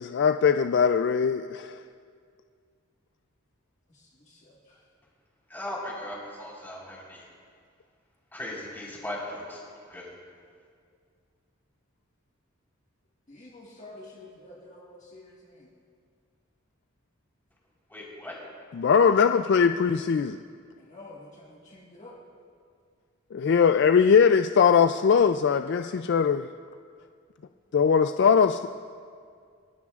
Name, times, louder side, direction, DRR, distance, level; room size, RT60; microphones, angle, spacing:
voice 1, 0.0-1.8 18.7-20.4 23.3-26.5 27.7-28.7, left 6 dB, 55° left, 8 dB, 0.3 m, -21 dB
voice 2, 3.9-4.9 13.3-15.7 20.8-22.2, left 2 dB, 35° left, -4 dB, 1.6 m, -49 dB
voice 3, 5.5-7.3 8.3-10.1 17.9-18.4, left 1 dB, 10° left, -5 dB, 4.1 m, -38 dB
29.0 x 14.5 x 2.4 m, 2.2 s
head